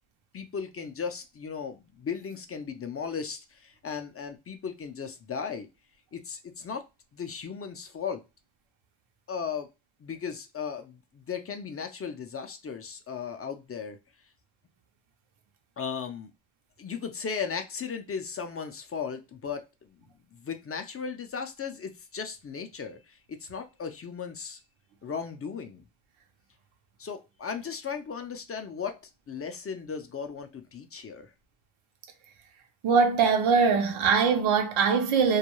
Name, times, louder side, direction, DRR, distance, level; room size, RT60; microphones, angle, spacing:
voice 1, 0.3-5.7 6.1-6.9 7.1-8.2 9.3-9.7 10.0-14.0 15.8-16.3 16.8-24.6 25.0-25.8 27.0-29.0 29.3-31.3, left 6 dB, 30° left, 0.4 m, -36 dB
voice 2, 32.8-35.4, right 5 dB, 90° right, 0.7 m, -22 dB
2.3 x 2.2 x 2.9 m
cardioid pair, 105°, 48 cm